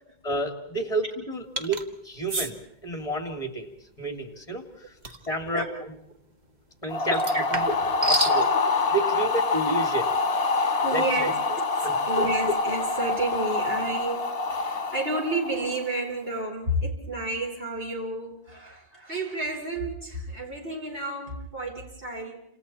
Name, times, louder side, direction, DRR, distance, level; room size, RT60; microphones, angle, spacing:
voice 1, 0.2-2.5 2.8-4.9 5.3-5.6 6.8-7.2 7.5-7.7 8.0-8.4 8.9-10.2 10.9-11.3 11.8-11.9, right 2 dB, 30° left, 5 dB, 2.8 m, -30 dB
sound 1, 1.6-1.8 2.3-2.5 5.0-5.3 7.1-8.4, right 1 dB, 40° right, 1.5 m, -28 dB
sound 2, 6.9-16.0, left 3 dB, 55° left, 1.7 m, -26 dB
voice 2, 10.8-22.4, right 1 dB, 60° right, -2 dB, 5.2 m, -31 dB
29.5 x 27.5 x 4.3 m, 0.73 s
omnidirectional pair, 1.1 m